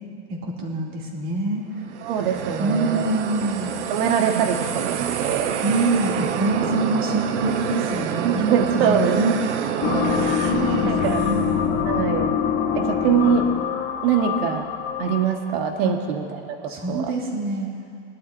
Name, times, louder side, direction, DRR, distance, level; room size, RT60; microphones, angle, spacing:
voice 1, 0.3-1.6 2.6-3.8 5.6-8.4 8.7-9.3 10.5-11.5 15.8-15.9 16.7-17.7, right 2 dB, 35° right, -3 dB, 2.8 m, -25 dB
sound 1, 1.8-11.6, right 9 dB, 80° right, 1.0 m, -27 dB
voice 2, 2.0-3.1 3.9-5.5 8.2-9.2 9.8-10.3 10.9-11.2 11.9-12.3 12.7-13.4 14.0-14.7 15.0-16.4 16.9-17.0, right 7 dB, 55° right, 3 dB, 1.6 m, -23 dB
sound 2, 9.8-15.4, left 8 dB, 35° left, 1.1 m, -24 dB
21.0 x 12.0 x 2.7 m, 2.3 s
supercardioid pair, 140°, 35 cm